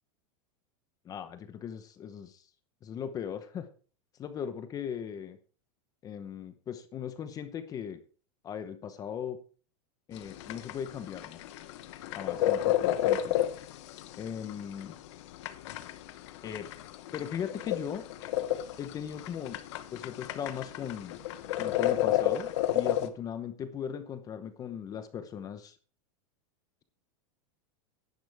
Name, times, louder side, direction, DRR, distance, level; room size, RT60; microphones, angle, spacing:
voice 1, 1.0-2.4 2.8-3.7 4.2-5.4 6.0-8.0 8.4-9.4 10.1-11.4 12.1-13.4 14.2-15.0 16.4-16.7 17.1-18.0 18.8-19.6 19.9-21.2 21.6-25.8, left 8 dB, 20° left, 10 dB, 0.9 m, -38 dB
sound 1, 10.2-23.1, left 12 dB, 60° left, 1.1 m, -31 dB
11.5 x 10.5 x 3.5 m, 0.39 s
supercardioid pair, 160°, 17 cm